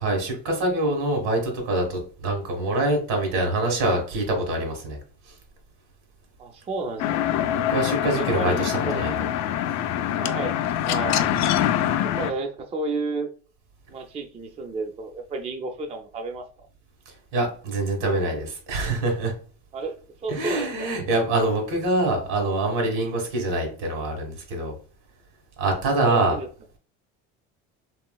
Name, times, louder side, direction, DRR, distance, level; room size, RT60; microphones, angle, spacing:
voice 1, 0.0-5.0 7.5-9.3 17.3-19.3 20.3-24.8 25.6-26.4, right 2 dB, 75° right, 3 dB, 1.5 m, -25 dB
voice 2, 6.4-7.2 8.1-9.0 10.2-10.6 10.8-11.3 12.0-13.3 13.9-16.4 19.7-19.9 20.2-20.9 23.6-23.7 26.1-26.5, right 3 dB, 20° right, 5 dB, 0.4 m, -31 dB
sound 1, 7.0-12.3, left 11 dB, 60° left, 0.4 m, -24 dB
3.0 x 3.0 x 2.2 m, 0.41 s
cardioid pair, 115°, 31 cm